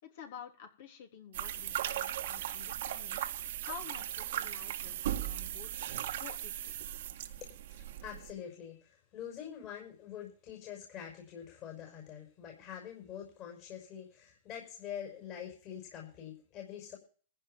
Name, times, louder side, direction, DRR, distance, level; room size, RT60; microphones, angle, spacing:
voice 1, 0.0-5.7 6.1-7.0, left 8 dB, 65° left, 4 dB, 3.6 m, -50 dB
sound 1, 1.3-8.3, right 12 dB, 65° right, 1.6 m, -38 dB
voice 2, 7.7-17.0, left 9 dB, 40° left, 1 dB, 5.8 m, -45 dB
15.5 x 5.5 x 9.2 m, 0.41 s
hypercardioid pair, 120°, 0 cm